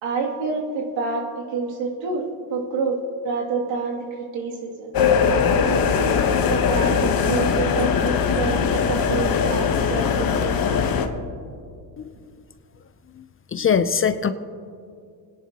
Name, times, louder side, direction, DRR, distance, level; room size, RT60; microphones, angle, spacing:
voice 1, 0.0-3.0 3.2-4.0 4.3-4.9 5.5-6.2 6.5-10.8, right 4 dB, 75° right, -2 dB, 2.7 m, -28 dB
sound 1, 4.9-11.1, left 6 dB, 50° left, 1.2 m, -20 dB
voice 2, 13.5-14.3, left 7 dB, 30° left, 11 dB, 0.5 m, -20 dB
29.5 x 10.5 x 2.9 m, 2.4 s
cardioid pair, 100°, 45 cm